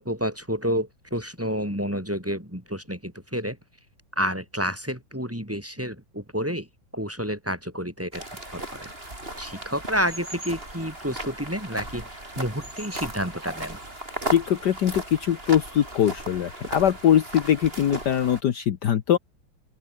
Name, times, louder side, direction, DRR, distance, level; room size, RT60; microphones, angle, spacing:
voice 1, 0.0-3.6 4.2-6.7 6.9-8.2 8.5-8.9 9.4-13.8, equal, 5° right, 7.7 m, -29 dB
sound 1, 8.1-18.4, right 1 dB, 25° right, 6.8 m, -36 dB
voice 2, 14.3-19.2, left 10 dB, 60° left, 1.6 m, -22 dB
open air
omnidirectional pair, 2.1 m